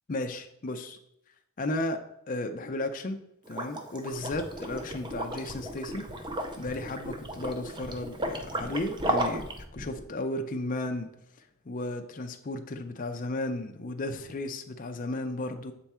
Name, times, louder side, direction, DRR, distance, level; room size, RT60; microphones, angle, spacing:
voice 1, 0.1-1.0 1.6-2.0 2.3-6.1 6.6-11.1 11.7-15.7, left 2 dB, 35° left, 6 dB, 0.4 m, -34 dB
Liquid, 3.5-9.6, right 1 dB, 20° right, 0.5 m, -35 dB
sound 1, 4.1-10.0, right 1 dB, 35° right, 1.2 m, -42 dB
7.6 x 3.5 x 4.2 m, 0.79 s
head